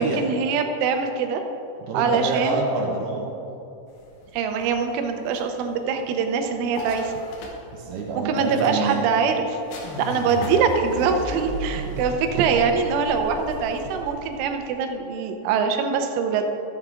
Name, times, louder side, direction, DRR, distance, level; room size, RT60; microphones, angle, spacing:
voice 1, 0.0-1.4 1.9-2.6 4.3-7.1 8.3-16.5, right 5 dB, 90° right, 5 dB, 3.3 m, -23 dB
voice 2, 1.8-3.3 7.7-9.0 11.7-12.1, right 3 dB, 70° right, -1 dB, 2.7 m, -27 dB
sound 1, 3.9-14.0, left 2 dB, 80° left, 3.6 m, -42 dB
sound 2, 9.8-14.9, right 1 dB, 50° left, 3.7 m, -35 dB
14.0 x 7.6 x 3.7 m, 2.8 s
omnidirectional pair, 5.4 m